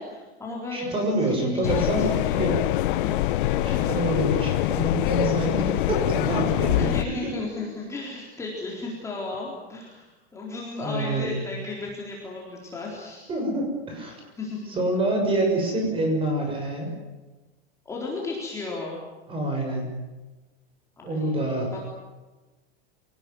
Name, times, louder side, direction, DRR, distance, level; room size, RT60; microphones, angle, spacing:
voice 1, 0.0-2.4 2.9-4.0 6.8-13.3 14.4-14.7 17.9-19.0 21.0-21.6, left 3 dB, 10° left, -3 dB, 4.1 m, -35 dB
voice 2, 0.7-2.7 3.6-7.1 10.8-11.3 13.3-14.2 14.7-16.9 19.3-19.9 21.0-21.7, right 1 dB, 15° right, 3 dB, 6.4 m, -26 dB
sound 1, 1.6-7.0, left 14 dB, 50° left, 1.1 m, -24 dB
27.0 x 19.0 x 9.5 m, 1.2 s
supercardioid pair, 165°, 32 cm